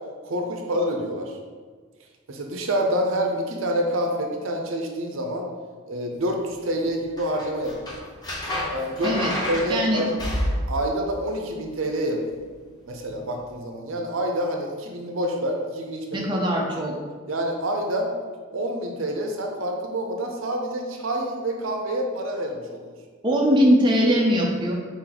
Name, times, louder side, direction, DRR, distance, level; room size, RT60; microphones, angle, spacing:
voice 1, 0.2-1.4 2.3-5.5 5.9-7.9 8.7-9.2 9.5-10.1 10.7-12.4 12.9-16.3 17.3-18.1 18.5-22.9, right 1 dB, 70° right, 2 dB, 0.6 m, -27 dB
sound 1, 7.2-10.9 13.1-13.2, left 1 dB, 20° left, 0.7 m, -29 dB
voice 2, 9.7-10.0 16.1-16.9 23.2-24.7, equal, 20° right, -2 dB, 0.5 m, -20 dB
4.2 x 3.1 x 3.9 m, 1.5 s
head